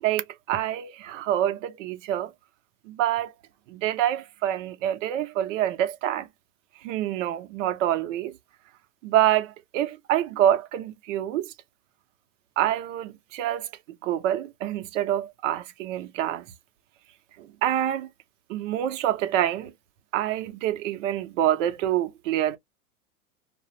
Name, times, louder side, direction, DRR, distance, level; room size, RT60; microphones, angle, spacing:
voice 1, 0.0-2.3 2.9-3.3 3.7-6.3 6.8-8.4 9.0-11.5 12.6-13.7 14.0-16.4 17.4-18.1 18.5-19.7 20.1-22.6, right 11 dB, 65° right, 0.7 m, -26 dB
2.3 x 2.1 x 2.6 m
hypercardioid pair, 110°, 41 cm